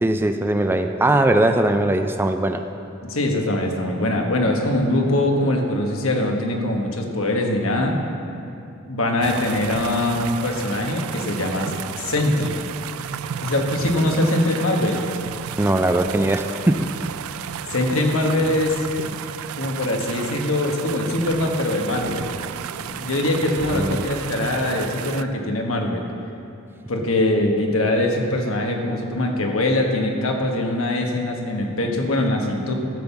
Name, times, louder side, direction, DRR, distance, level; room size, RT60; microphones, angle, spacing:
voice 1, 0.0-2.6 15.6-16.9 23.7-24.0, right 1 dB, 10° right, 7 dB, 0.3 m, -20 dB
voice 2, 3.0-8.0 8.9-12.5 13.4-15.0 17.7-18.9 19.6-22.3 22.7-26.1 26.9-32.7, left 1 dB, 75° left, 2 dB, 1.3 m, -22 dB
sound 1, 9.2-25.2, right 8 dB, 85° right, 0.4 m, -33 dB
12.5 x 5.6 x 7.0 m, 2.8 s
head